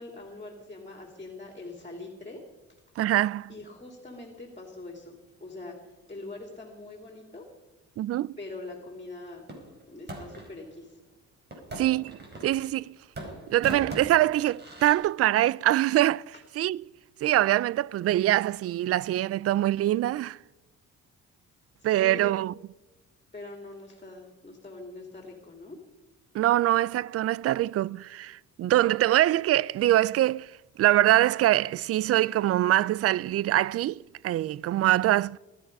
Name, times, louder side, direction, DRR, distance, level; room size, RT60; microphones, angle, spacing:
voice 1, 0.0-2.4 3.5-5.8 6.1-7.5 8.4-9.5 9.9-11.0 21.8-22.4 23.3-25.8, left 2 dB, 25° left, 3.2 m, -43 dB
voice 2, 3.0-3.5 8.0-8.3 11.8-12.9 13.5-16.2 16.6-16.8 17.2-20.4 21.8-22.5 26.3-30.5 30.8-35.4, right 14 dB, 50° right, 0.4 m, -24 dB
sound 1, 9.5-10.5 11.5-12.9 13.1-15.0, right 1 dB, 35° right, 5.0 m, -40 dB
19.5 x 12.5 x 5.5 m
cardioid pair, 90°, 30 cm